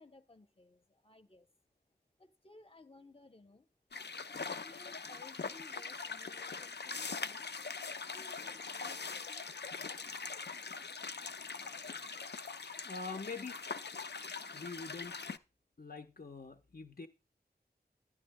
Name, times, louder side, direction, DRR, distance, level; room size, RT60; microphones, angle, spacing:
voice 1, 0.0-1.5 2.2-3.7 4.3-7.5 7.8-9.5, left 3 dB, 35° left, 1.3 m, -59 dB
sound 1, 3.9-15.4, left 5 dB, 75° left, 0.6 m, -42 dB
voice 2, 12.6-13.6 14.5-15.2 15.8-17.1, left 4 dB, 55° left, 1.1 m, -44 dB
12.0 x 11.5 x 2.2 m
wide cardioid pair, 65°, 18 cm